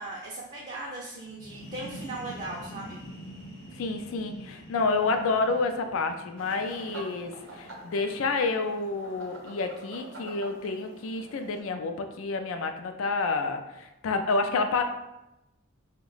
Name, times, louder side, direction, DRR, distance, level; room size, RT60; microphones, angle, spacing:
voice 1, 0.0-3.0, right 2 dB, 35° right, -4 dB, 0.4 m, -38 dB
sound 1, 1.2-8.8, equal, 50° left, 0.9 m, -46 dB
voice 2, 3.8-14.8, left 3 dB, 75° left, 6 dB, 0.4 m, -29 dB
sound 2, 6.4-11.6, right 2 dB, 65° right, 0.7 m, -46 dB
2.8 x 2.2 x 3.9 m, 0.93 s
head